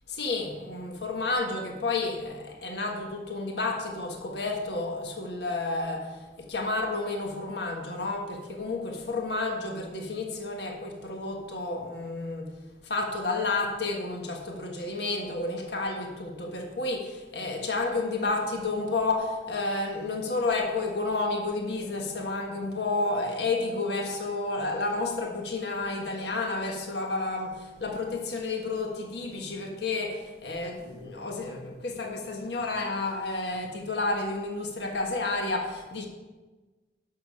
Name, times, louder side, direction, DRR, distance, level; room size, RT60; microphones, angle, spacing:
voice 1, 0.1-12.5 12.8-36.1, left 3 dB, 70° left, 2 dB, 1.4 m, -31 dB
11.0 x 6.8 x 5.6 m, 1.2 s
head